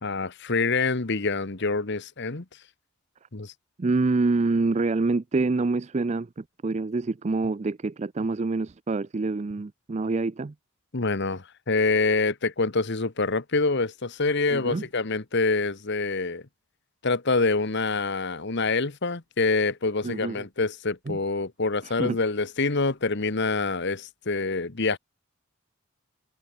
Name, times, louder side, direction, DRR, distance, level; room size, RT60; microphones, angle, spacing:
voice 1, 0.0-2.4 3.3-3.5 10.9-16.4 17.0-25.0, left 3 dB, 55° left, 1.3 m, -26 dB
voice 2, 3.8-10.5 14.5-14.8 20.0-20.4 21.1-21.2 21.8-22.2, right 3 dB, 30° right, 0.4 m, -26 dB
head